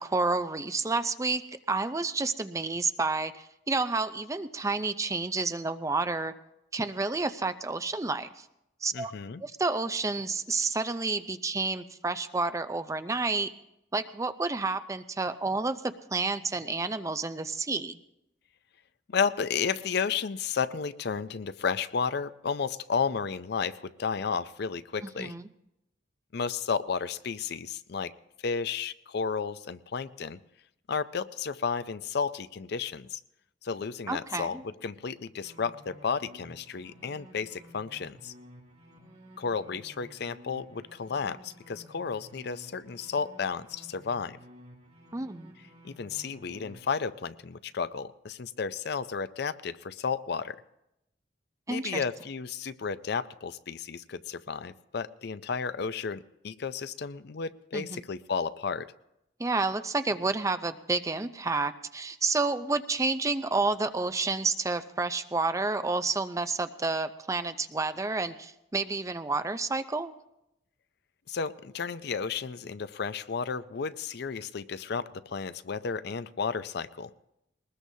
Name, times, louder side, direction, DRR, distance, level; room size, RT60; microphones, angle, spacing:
voice 1, 0.0-1.4 1.7-6.3 6.7-8.3 8.8-9.1 9.4-13.5 13.9-15.8 16.1-18.0 25.2-25.4 34.1-34.5 45.1-45.5 51.7-52.0 57.7-58.0 59.4-70.1, right 3 dB, 15° right, 10 dB, 0.5 m, -30 dB
voice 2, 8.9-9.4 19.1-25.3 26.3-28.1 28.4-30.4 30.9-33.2 33.6-38.3 39.4-44.4 45.8-50.6 51.7-58.9 71.3-77.1, left 5 dB, 60° left, 14 dB, 0.5 m, -32 dB
sound 1, 35.4-46.8, equal, 40° right, 3.0 m, -53 dB
21.0 x 20.0 x 2.8 m, 0.84 s
head